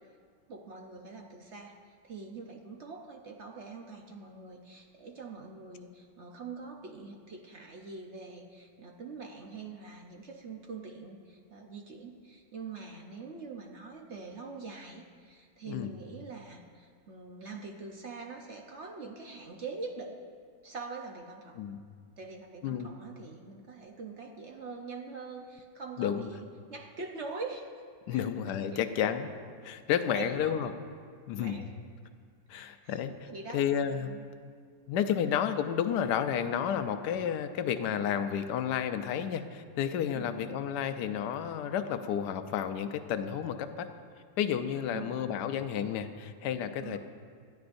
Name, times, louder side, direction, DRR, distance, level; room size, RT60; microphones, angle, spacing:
voice 1, 0.5-20.2 20.6-21.6 22.2-27.7 28.1-28.3 28.7-28.8 30.1-30.6 31.4-31.7 32.5-33.0 33.3-33.6 34.0-34.2 40.1-40.4 44.9-45.2 46.8-47.0, right 4 dB, 50° right, 2 dB, 0.9 m, -44 dB
voice 2, 22.6-22.9 26.0-26.3 28.1-29.3 29.6-30.7 31.3-31.7 32.5-34.1 34.9-43.9 44.4-47.0, left 9 dB, 70° left, 8 dB, 1.2 m, -31 dB
21.0 x 13.5 x 2.6 m, 2.1 s
omnidirectional pair, 2.0 m